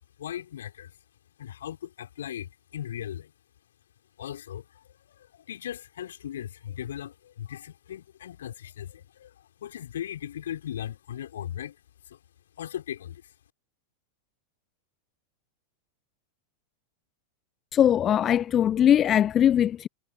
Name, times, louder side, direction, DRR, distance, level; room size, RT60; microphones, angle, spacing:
voice 1, 0.2-0.9 1.4-3.3 4.2-9.3 9.6-11.7 12.1-12.2 12.6-13.2, left 10 dB, 60° left, 5.2 m, -38 dB
voice 2, 17.7-19.9, left 10 dB, 25° left, 0.7 m, -21 dB
figure-of-eight pair, 90°, 0 cm